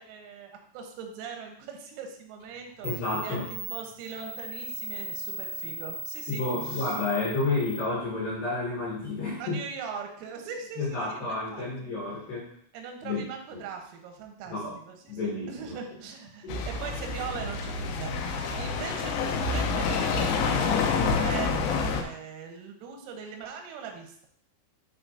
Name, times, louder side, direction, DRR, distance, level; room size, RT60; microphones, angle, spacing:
voice 1, 0.0-2.9 3.2-7.0 9.4-11.9 12.7-14.6 14.9-20.8 21.2-24.3, right 6 dB, 90° right, 3 dB, 3.7 m, -40 dB
Tube TV Buzz, 2.4-2.5 2.8-7.8, right 1 dB, 55° right, 1.7 m, -38 dB
voice 2, 2.8-3.5 6.3-9.6 10.8-12.5 13.0-13.2 13.5-13.6 14.5-14.7 15.1-15.5 16.4-16.6, left 3 dB, 65° left, -6 dB, 2.3 m, -30 dB
sound 1, 16.5-22.0, left 4 dB, 80° left, 3.0 m, -28 dB
11.5 x 4.1 x 2.6 m, 0.64 s
omnidirectional pair, 6.0 m